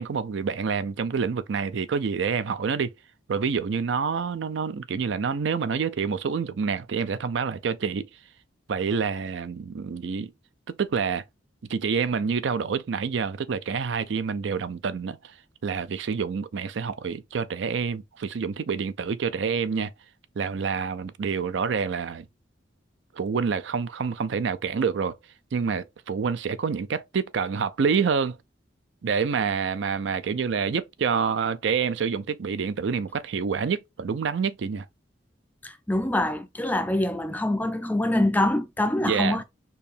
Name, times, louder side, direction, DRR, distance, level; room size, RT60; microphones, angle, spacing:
voice 1, 0.0-2.9 3.3-8.1 8.7-10.3 10.8-11.2 11.7-15.3 15.6-19.9 20.4-22.2 23.1-25.2 25.5-28.4 29.0-34.9 39.0-39.4, right 6 dB, 65° right, 0.4 m, -27 dB
voice 2, 35.6-39.4, left 1 dB, 10° left, 0.4 m, -25 dB
4.6 x 2.7 x 3.3 m
head